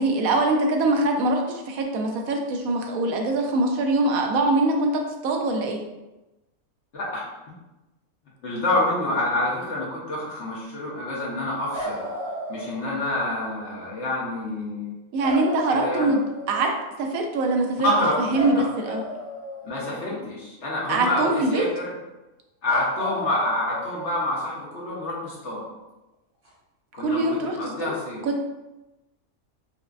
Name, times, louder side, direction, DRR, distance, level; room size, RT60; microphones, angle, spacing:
voice 1, 0.0-5.8 15.1-16.7 17.0-17.9 18.3-19.0 20.9-21.6 27.0-27.5 27.8-27.9 28.2-28.4, right 2 dB, 80° right, 2 dB, 1.0 m, -23 dB
voice 2, 6.9-7.3 8.4-12.1 12.5-15.0 15.7-16.1 17.8-18.9 19.6-21.9 22.6-25.6 26.9-28.2, left 1 dB, 55° left, -5 dB, 1.2 m, -27 dB
sound 1, 11.7-13.2 15.2-16.8 18.3-20.2 22.7-24.4 26.4-26.5, equal, 55° right, 1.5 m, -34 dB
4.8 x 2.1 x 2.4 m, 1.0 s
omnidirectional pair, 1.5 m